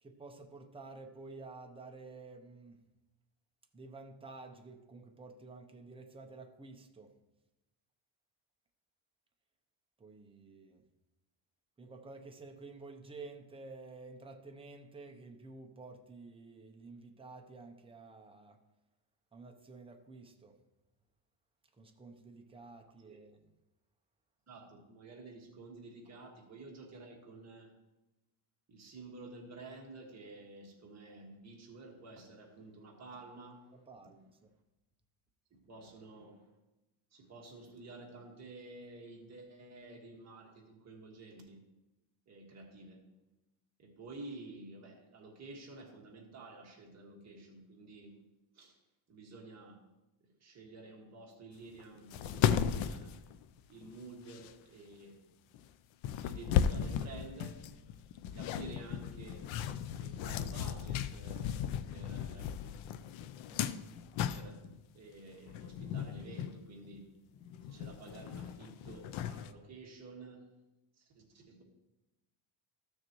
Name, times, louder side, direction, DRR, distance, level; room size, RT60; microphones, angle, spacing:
voice 1, 0.0-2.8 3.7-7.1 10.0-10.8 11.8-18.6 19.3-20.6 21.8-23.4 33.9-34.5, right 3 dB, 10° right, 4 dB, 0.6 m, -51 dB
voice 2, 24.5-27.7 28.7-33.7 35.7-36.5 37.1-41.6 42.3-43.0 43.8-48.1 48.5-48.8 49.1-49.8 50.4-53.1 53.7-55.2 56.2-57.6 58.3-59.6 59.9-62.5 63.5-63.7 64.2-64.6 64.9-67.1 67.7-70.4 71.0-71.6, right 2 dB, 35° right, -1 dB, 1.7 m, -51 dB
sound 1, 51.8-51.9 52.1-53.9 54.3-54.5 55.5-55.6 56.0-64.8 65.5-66.6 66.9-67.0 67.4-69.5, left 9 dB, 70° left, 0.6 m, -36 dB
14.0 x 6.5 x 3.0 m, 1.0 s
cardioid pair, 165°, 48 cm